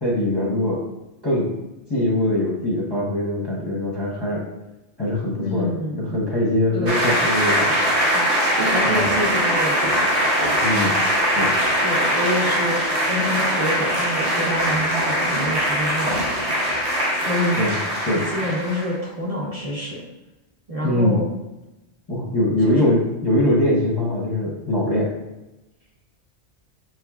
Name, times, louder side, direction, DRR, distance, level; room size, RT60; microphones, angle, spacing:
voice 1, 0.0-0.8 1.2-1.5 1.9-4.4 5.0-5.7 6.0-7.7 8.9-9.0 10.6-10.9 11.3-11.6 17.6-17.8 18.0-18.3 20.8-21.2 22.1-25.1, left 1 dB, 25° left, -6 dB, 0.8 m, -22 dB
voice 2, 5.4-6.1 6.7-7.1 7.9-10.1 11.8-12.8 13.1-16.2 16.5-16.8 17.1-20.0 20.7-21.3 22.6-22.9, equal, 35° right, -5 dB, 0.9 m, -27 dB
sound 1, 6.9-19.0, equal, 80° right, 1.1 m, -21 dB
6.1 x 3.1 x 2.3 m, 1.0 s
omnidirectional pair, 1.1 m